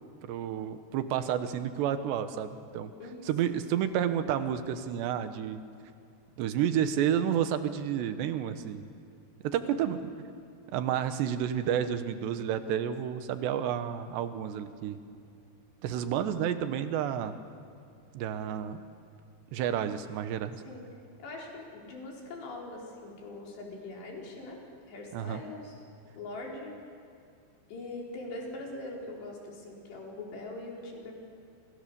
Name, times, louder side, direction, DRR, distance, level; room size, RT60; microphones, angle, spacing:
voice 1, 0.2-2.9 3.3-5.6 6.4-8.9 9.4-10.1 10.7-15.0 15.8-17.4 18.1-18.8 19.5-20.6 25.1-25.4, right 9 dB, 80° right, 9 dB, 3.3 m, -30 dB
voice 2, 3.0-3.3 9.6-9.7 20.6-20.9 21.2-24.6 24.9-25.7 26.2-26.7 27.7-31.1, left 2 dB, 75° left, -2 dB, 6.6 m, -42 dB
28.5 x 27.5 x 7.0 m, 2.4 s
omnidirectional pair, 5.0 m